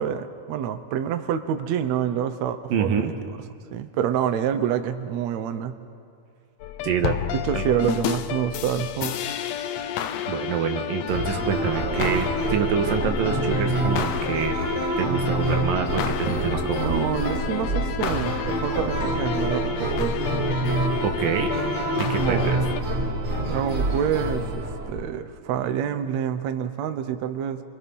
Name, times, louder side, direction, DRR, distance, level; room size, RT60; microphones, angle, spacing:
voice 1, 0.0-3.4 3.7-5.8 7.3-9.2 16.7-20.2 22.1-22.5 23.5-27.6, right 9 dB, 65° right, 9 dB, 1.9 m, -27 dB
voice 2, 2.7-3.1 6.8-7.1 7.5-7.7 10.3-14.6 15.0-16.9 21.0-21.5 22.0-22.6, right 7 dB, 85° right, 5 dB, 3.1 m, -26 dB
sound 1, 6.6-22.8, left 10 dB, 75° left, 1.6 m, -31 dB
sound 2, 11.1-25.0, right 2 dB, 35° right, 4.3 m, -27 dB
29.5 x 24.0 x 5.5 m, 2.3 s
omnidirectional pair, 3.9 m